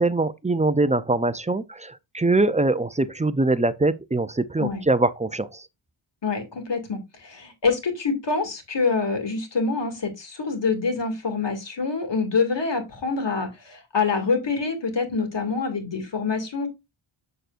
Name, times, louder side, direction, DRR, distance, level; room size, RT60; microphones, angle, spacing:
voice 1, 0.0-5.7, right 2 dB, 15° right, 0.4 m, -23 dB
voice 2, 6.2-16.7, left 4 dB, 60° left, 2.3 m, -26 dB
7.6 x 6.7 x 2.5 m
wide cardioid pair, 110°, 49 cm